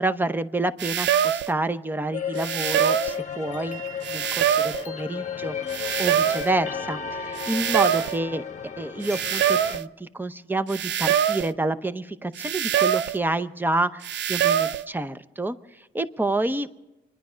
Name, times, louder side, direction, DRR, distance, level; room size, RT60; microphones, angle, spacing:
voice 1, 0.0-3.8 4.1-16.7, right 2 dB, 10° right, 11 dB, 0.7 m, -28 dB
sound 1, 0.8-1.5 2.4-3.2 4.0-4.9 5.7-6.5 7.4-8.2 9.0-9.9 10.7-11.5 12.4-13.2 14.0-14.9, right 9 dB, 65° right, 0.5 m, -24 dB
sound 2, 2.1-9.8, left 7 dB, 35° left, 1.0 m, -33 dB
25.5 x 10.5 x 5.0 m, 1.0 s
cardioid pair, 90°, 20 cm